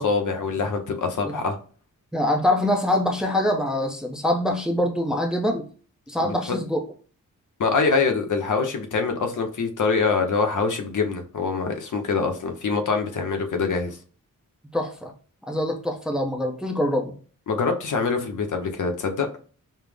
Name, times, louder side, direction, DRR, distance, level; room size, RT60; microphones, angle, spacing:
voice 1, 0.0-1.6 6.2-6.6 7.6-14.0 17.5-19.3, left 4 dB, 70° left, 5 dB, 0.8 m, -24 dB
voice 2, 2.1-5.7 6.1-6.8 14.7-15.1 15.5-17.2, left 1 dB, ahead, 2 dB, 0.6 m, -24 dB
5.3 x 2.0 x 3.3 m, 0.41 s
wide cardioid pair, 125°, 32 cm